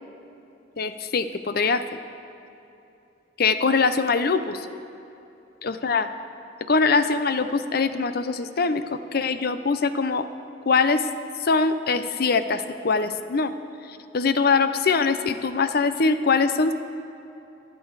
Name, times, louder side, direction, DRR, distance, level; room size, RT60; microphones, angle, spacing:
voice 1, 0.8-1.8 3.4-4.6 5.6-6.1 6.7-8.8 9.1-10.3 10.7-11.0 11.4-13.5 14.1-16.7, left 4 dB, 55° left, 11 dB, 0.6 m, -22 dB
25.0 x 8.6 x 4.8 m, 2.8 s
head